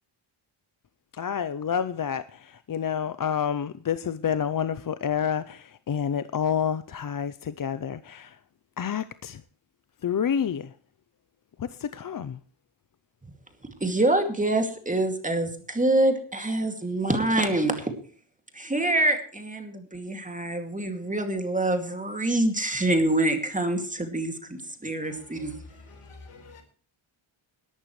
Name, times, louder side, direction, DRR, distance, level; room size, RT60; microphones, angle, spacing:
voice 1, 1.1-8.4 8.8-9.4 10.0-10.7 11.6-12.4, left 8 dB, 40° left, 0.6 m, -29 dB
voice 2, 13.8-17.9 18.5-25.5, right 1 dB, 15° right, 2.4 m, -26 dB
voice 3, 25.0-26.6, left 3 dB, 85° left, 4.7 m, -48 dB
21.0 x 12.0 x 3.2 m
wide cardioid pair, 160°, 50 cm